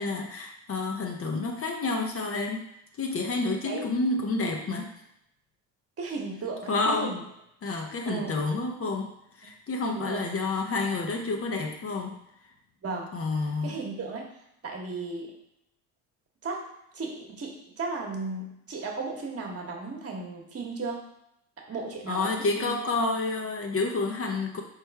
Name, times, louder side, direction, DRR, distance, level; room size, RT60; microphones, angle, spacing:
voice 1, 0.0-2.7 3.0-4.9 6.7-7.2 7.6-9.1 9.4-12.2 13.1-13.7 22.1-24.6, left 3 dB, 35° left, 2 dB, 0.7 m, -29 dB
voice 2, 6.0-7.2 8.0-8.3 9.9-10.3 12.8-13.1 13.4-14.3 14.6-15.3 16.4-16.7 16.9-21.0 21.6-22.7, right 3 dB, 35° right, 1 dB, 1.3 m, -35 dB
4.3 x 3.3 x 3.4 m, 0.79 s
hypercardioid pair, 65°, 42 cm